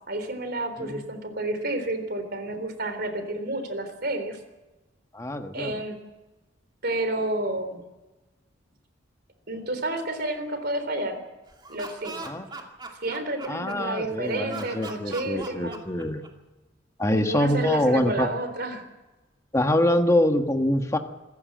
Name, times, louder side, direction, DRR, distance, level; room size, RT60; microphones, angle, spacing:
voice 1, 0.1-4.4 5.5-6.0 6.8-7.8 9.5-11.2 11.7-12.4 13.0-15.8 17.1-18.8, right 2 dB, 55° right, 9 dB, 3.7 m, -30 dB
voice 2, 5.1-5.8 12.2-12.5 13.5-16.3 17.0-18.3 19.5-21.0, left 1 dB, 15° left, 5 dB, 1.4 m, -24 dB
Laughter, 11.5-14.0 14.5-16.5, right 3 dB, 25° right, 2.4 m, -40 dB
26.5 x 14.5 x 7.6 m, 1.1 s
head